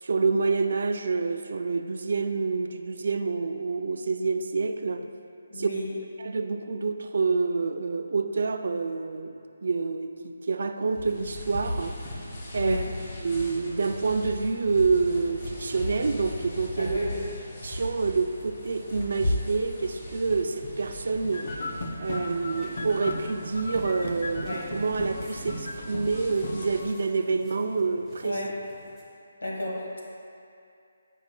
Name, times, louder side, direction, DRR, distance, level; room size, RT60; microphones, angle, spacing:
voice 1, 0.0-5.1 5.6-5.7 6.2-9.3 9.6-12.2 12.5-12.8 13.2-17.0 17.6-21.7 22.0-28.4, right 4 dB, 65° right, 8 dB, 0.3 m, -27 dB
voice 2, 5.5-5.9 12.6-12.9 16.8-17.2 24.4-24.7 28.2-28.5 29.4-30.0, equal, 85° left, -3 dB, 1.2 m, -32 dB
sound 1, 10.9-26.9, left 1 dB, 35° left, 1.4 m, -37 dB
sound 2, 15.4-29.1, equal, 5° left, 1.0 m, -52 dB
sound 3, 21.2-26.8, left 1 dB, 60° left, 0.6 m, -36 dB
7.9 x 5.4 x 2.2 m, 2.5 s
figure-of-eight pair, 155°, 0 cm